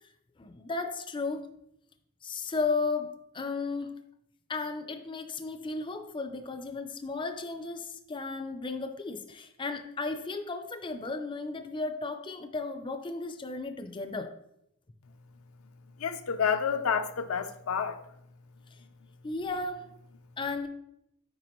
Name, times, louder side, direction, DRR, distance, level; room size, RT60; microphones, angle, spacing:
voice 1, 0.4-1.5 2.2-3.9 4.5-14.3 18.7-18.8 19.2-19.9 20.4-20.7, left 3 dB, 25° left, 0.5 m, -34 dB
voice 2, 16.0-18.0, left 6 dB, 85° left, 0.6 m, -29 dB
9.4 x 5.0 x 3.0 m
head